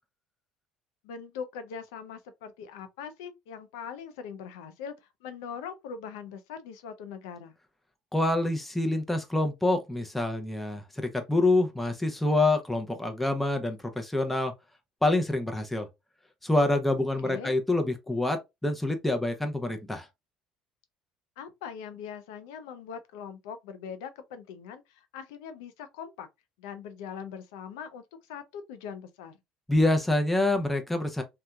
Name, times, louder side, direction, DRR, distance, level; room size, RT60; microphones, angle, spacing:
voice 1, 1.0-7.5 17.2-17.6 21.4-26.3 26.6-29.4, left 7 dB, 80° left, 0.4 m, -41 dB
voice 2, 8.1-14.5 15.0-15.9 16.4-20.1 29.7-31.2, left 2 dB, 5° left, 0.6 m, -26 dB
2.8 x 2.2 x 2.2 m
hypercardioid pair, 65°, 2 cm